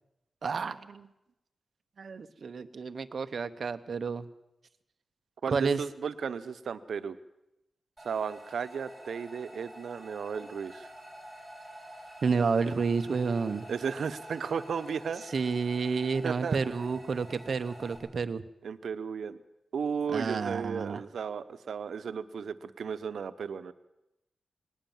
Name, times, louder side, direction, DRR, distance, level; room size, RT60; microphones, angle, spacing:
voice 1, 0.4-1.1 2.0-4.3 5.5-5.8 12.2-13.6 15.3-18.4 20.1-21.0, right 5 dB, 55° right, 11 dB, 1.0 m, -30 dB
voice 2, 5.4-7.2 8.0-10.9 13.7-15.2 16.2-16.6 18.6-19.4 19.7-23.7, right 6 dB, 80° right, 12 dB, 1.0 m, -34 dB
sound 1, 8.0-18.0, right 1 dB, ahead, 7.1 m, -48 dB
19.5 x 18.5 x 7.3 m, 0.89 s
wide cardioid pair, 165°, 0 cm